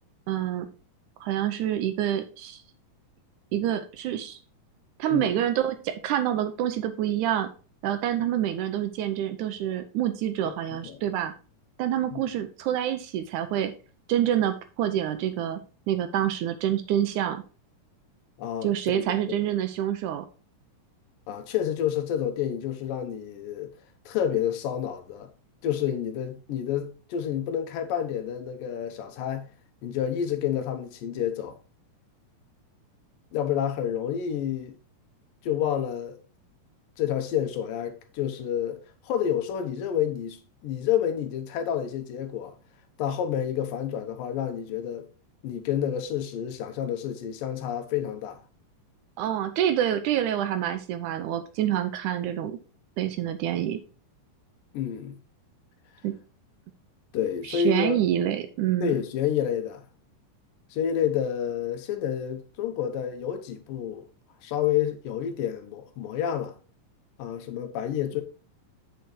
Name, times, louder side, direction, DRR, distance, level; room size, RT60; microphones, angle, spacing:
voice 1, 0.3-0.7 1.2-2.6 3.5-4.4 5.0-7.5 7.8-11.3 11.8-13.7 14.1-15.6 15.9-17.4 18.6-20.3 49.2-52.6 53.0-53.8 56.0-56.1 57.4-59.0, right 11 dB, 80° right, 2.0 m, -27 dB
voice 2, 18.4-19.4 21.3-23.7 24.1-25.3 25.6-29.5 29.8-31.6 33.3-34.8 35.4-36.2 37.0-42.6 43.0-45.1 45.4-48.4 54.7-55.2 57.1-58.0 58.8-59.9 60.7-64.0 64.4-66.5 67.2-68.2, left 9 dB, 90° left, 2.7 m, -29 dB
7.8 x 7.0 x 3.1 m
omnidirectional pair, 3.9 m